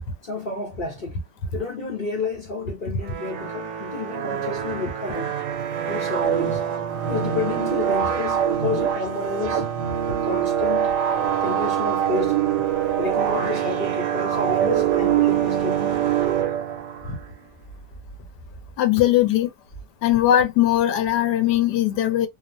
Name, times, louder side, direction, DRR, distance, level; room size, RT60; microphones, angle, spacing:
voice 1, 0.2-1.2 1.5-5.4 5.9-6.6 7.1-9.7 10.1-11.0 11.4-12.5 13.0-15.9, left 4 dB, 45° left, 0.6 m, -30 dB
sound 1, 3.0-17.2, right 9 dB, 75° right, 1.2 m, -24 dB
voice 2, 18.8-19.5 20.0-22.3, left 12 dB, 75° left, 1.1 m, -19 dB
3.0 x 2.0 x 2.5 m
omnidirectional pair, 1.9 m